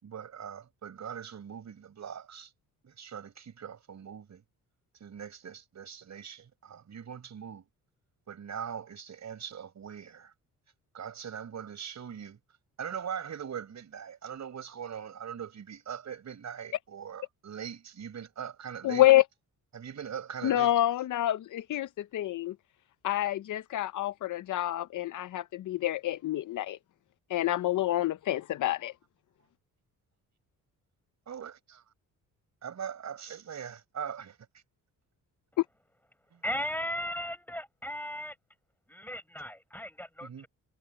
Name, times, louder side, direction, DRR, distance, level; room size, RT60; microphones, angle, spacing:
voice 1, 0.0-2.5 2.8-4.4 5.0-7.6 8.3-10.3 10.9-12.4 12.8-19.0 19.7-20.7 31.3-31.5 32.6-34.4 40.2-40.5, right 8 dB, 50° right, 5.9 m, -41 dB
voice 2, 18.8-19.2 20.4-22.5 23.0-26.8 27.3-28.9, left 14 dB, 60° left, 0.6 m, -27 dB
voice 3, 36.4-38.3 38.9-40.5, left 1 dB, 5° left, 7.1 m, -36 dB
cardioid pair, 125°, 35 cm